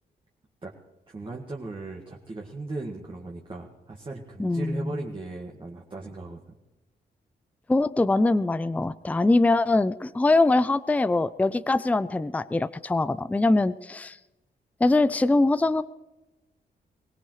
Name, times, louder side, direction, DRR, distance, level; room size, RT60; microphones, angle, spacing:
voice 1, 1.1-6.4, right 2 dB, 30° right, -1 dB, 1.8 m, -37 dB
voice 2, 4.4-5.0 7.7-14.2 14.8-15.8, left 2 dB, 10° left, 15 dB, 0.4 m, -23 dB
22.5 x 18.0 x 3.2 m, 1.0 s
cardioid pair, 95°, 17 cm